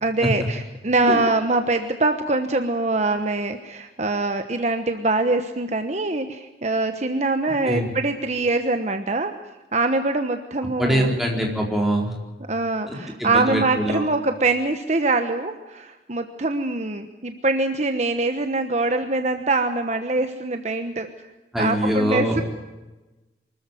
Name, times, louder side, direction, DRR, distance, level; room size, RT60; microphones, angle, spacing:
voice 1, 0.0-9.3 9.7-11.1 12.5-21.1 21.6-22.4, right 2 dB, 40° right, 7 dB, 1.1 m, -23 dB
voice 2, 10.8-12.1 12.9-14.0 21.5-22.4, equal, ahead, 0 dB, 4.3 m, -23 dB
24.5 x 14.0 x 9.1 m, 1.1 s
head